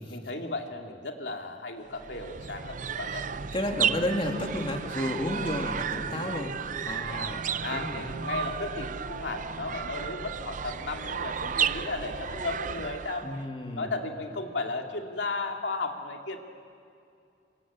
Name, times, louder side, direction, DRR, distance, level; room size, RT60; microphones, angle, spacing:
voice 1, 0.1-3.2 7.3-13.4 13.8-16.4, left 3 dB, 80° left, 3 dB, 2.4 m, -35 dB
sound 1, 1.9-13.4, right 7 dB, 45° right, 0.6 m, -33 dB
voice 2, 3.5-6.6 6.8-7.4 7.7-8.0 13.2-13.9, left 1 dB, 30° left, 2 dB, 2.4 m, -31 dB
28.0 x 24.5 x 8.7 m, 2.5 s
head